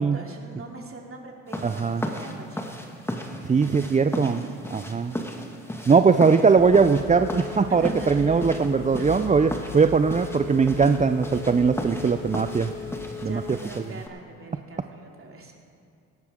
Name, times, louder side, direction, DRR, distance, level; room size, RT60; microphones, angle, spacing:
voice 1, 0.1-2.8 4.1-5.2 7.7-8.5 9.0-9.5 11.9-12.1 13.2-15.6, right 3 dB, 40° right, 1 dB, 2.8 m, -43 dB
sound 1, 1.5-14.1, equal, 5° left, 2.0 m, -36 dB
voice 2, 1.6-2.0 3.4-5.1 5.9-12.7 13.2-13.4, right 5 dB, 20° right, 9 dB, 0.5 m, -20 dB
Telephone, 6.6-13.6, left 6 dB, 45° left, 0.8 m, -37 dB
18.0 x 12.0 x 3.7 m, 2.4 s
hypercardioid pair, 55°, 34 cm